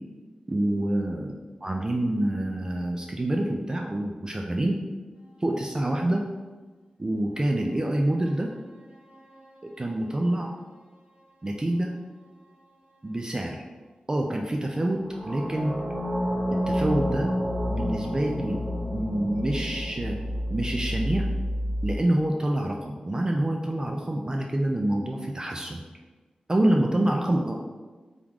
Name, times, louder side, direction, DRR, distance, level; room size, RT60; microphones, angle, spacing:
voice 1, 0.5-4.8 5.4-6.2 7.0-8.5 9.6-10.5 11.4-11.9 13.0-13.6 14.1-15.8 16.5-17.3 17.7-18.6 18.9-20.2 20.5-21.3 21.8-25.8 26.5-27.6, right 1 dB, 25° right, 1 dB, 0.3 m, -27 dB
sound 1, 8.6-9.8 15.0-22.0, equal, 55° right, 0.7 m, -30 dB
3.6 x 3.0 x 3.6 m, 1.3 s
wide cardioid pair, 85°, 3 cm